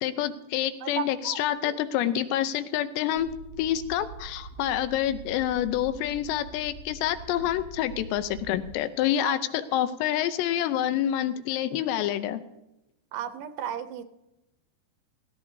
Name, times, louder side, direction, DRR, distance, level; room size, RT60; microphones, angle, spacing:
voice 1, 0.0-3.3 3.6-12.4, left 11 dB, 80° left, 12 dB, 2.9 m, -27 dB
voice 2, 0.8-1.4 1.7-1.8 9.0-9.3 13.1-14.0, right 9 dB, 80° right, 10 dB, 2.9 m, -34 dB
sound 1, 3.2-8.8, right 3 dB, 45° right, 1.6 m, -44 dB
18.0 x 15.5 x 2.7 m, 0.90 s
omnidirectional pair, 5.0 m